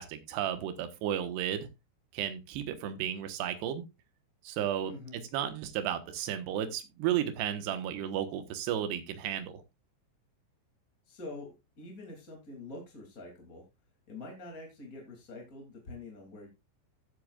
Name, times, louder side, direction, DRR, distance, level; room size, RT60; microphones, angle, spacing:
voice 1, 0.0-1.7 2.1-3.8 4.4-9.6, right 10 dB, 70° right, 9 dB, 3.0 m, -33 dB
voice 2, 4.8-5.2 11.1-13.7 14.1-16.5, left 2 dB, 25° left, 0 dB, 2.0 m, -45 dB
15.0 x 8.7 x 2.4 m, 0.24 s
omnidirectional pair, 5.7 m